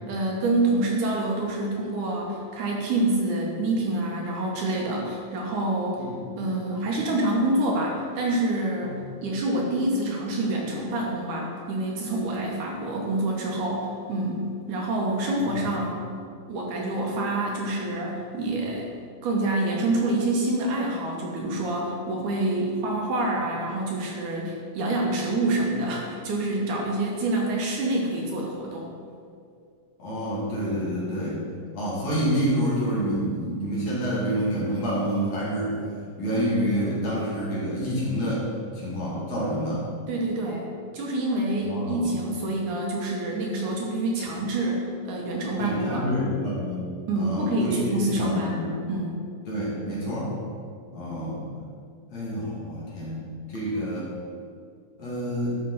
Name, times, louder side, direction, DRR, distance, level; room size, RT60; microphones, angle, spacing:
voice 1, 0.1-6.0 6.4-16.0 16.5-19.0 19.2-28.9 40.1-40.7 40.9-46.1 47.1-48.6 48.9-49.2, right 2 dB, 70° right, -1 dB, 2.3 m, -27 dB
voice 2, 15.4-15.7 30.0-31.4 31.7-35.8 36.2-38.5 38.7-39.8 41.7-42.1 45.6-46.9 47.2-48.7 49.4-50.3 50.9-51.4 52.1-53.2 53.5-54.1 55.0-55.6, equal, 55° left, -7 dB, 3.0 m, -28 dB
12.5 x 5.3 x 3.9 m, 2.3 s
omnidirectional pair, 4.0 m